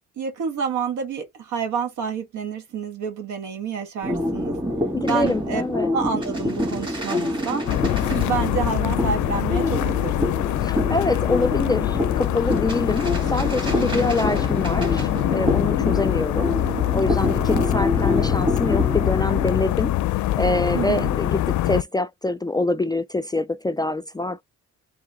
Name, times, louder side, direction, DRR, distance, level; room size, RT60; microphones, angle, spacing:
voice 1, 0.2-4.6 5.1-5.6 5.9-7.7 8.0-10.5 13.7-14.1 20.7-21.1, right 6 dB, 75° right, 1.6 m, -28 dB
sound 1, 4.0-19.5, left 1 dB, 15° right, 2.5 m, -27 dB
voice 2, 4.9-5.9 8.1-8.2 10.6-16.5 16.9-20.0 20.4-24.4, left 2 dB, 15° left, 0.4 m, -25 dB
sound 2, 7.7-21.8, left 14 dB, 70° left, 0.5 m, -24 dB
4.0 x 3.2 x 3.5 m
cardioid pair, 90°, 30 cm